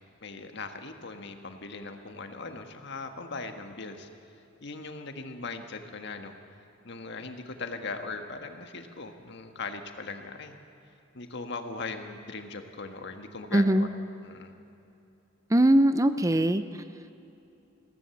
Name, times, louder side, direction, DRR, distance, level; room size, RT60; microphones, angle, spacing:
voice 1, 0.2-4.1 4.6-6.3 6.8-10.6 11.1-13.9 14.2-14.6, left 3 dB, 60° left, 6 dB, 1.6 m, -39 dB
voice 2, 13.5-13.9 15.5-16.6, right 1 dB, 15° right, 11 dB, 0.6 m, -21 dB
22.0 x 17.0 x 7.1 m, 2.8 s
head